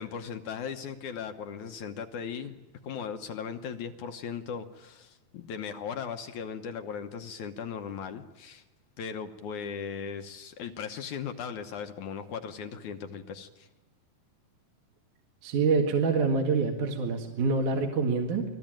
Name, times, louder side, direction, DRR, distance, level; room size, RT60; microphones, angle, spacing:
voice 1, 0.0-2.6 2.8-8.6 9.0-13.7, left 7 dB, 65° left, 7 dB, 2.2 m, -38 dB
voice 2, 15.4-18.4, right 4 dB, 60° right, 2 dB, 3.3 m, -26 dB
28.0 x 20.0 x 9.0 m, 1.1 s
omnidirectional pair, 4.2 m